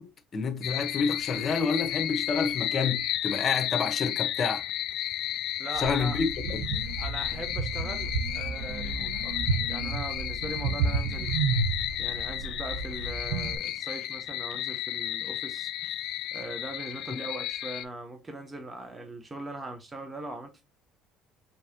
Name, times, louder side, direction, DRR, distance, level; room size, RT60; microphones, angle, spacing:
voice 1, 0.0-4.6 5.8-6.6, left 5 dB, 40° left, 1.1 m, -29 dB
sound 1, 0.6-17.8, left 13 dB, 65° left, 0.4 m, -33 dB
voice 2, 5.6-6.2 7.0-11.3 12.0-15.7 16.3-20.6, right 2 dB, 20° right, 1.0 m, -40 dB
sound 2, 5.7-13.6, right 4 dB, 85° right, 0.8 m, -31 dB
5.1 x 3.2 x 2.9 m
supercardioid pair, 75°, 0 cm